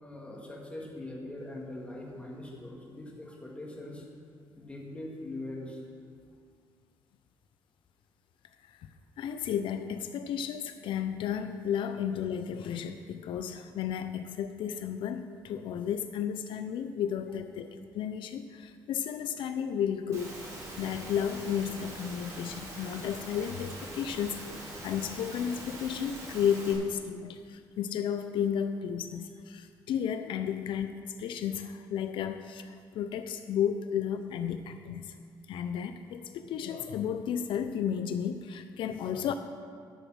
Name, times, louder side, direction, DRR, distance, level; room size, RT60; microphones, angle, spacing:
voice 1, 0.0-4.1 4.6-5.8, left 1 dB, 15° left, -2 dB, 2.0 m, -42 dB
voice 2, 9.2-20.3 20.8-35.2 35.5-39.3, left 8 dB, 75° left, 9 dB, 0.5 m, -33 dB
Engine / Mechanisms, 20.1-26.7, right 1 dB, 35° right, 2.6 m, -43 dB
11.0 x 6.8 x 6.3 m, 2.1 s
cardioid pair, 130°, 9 cm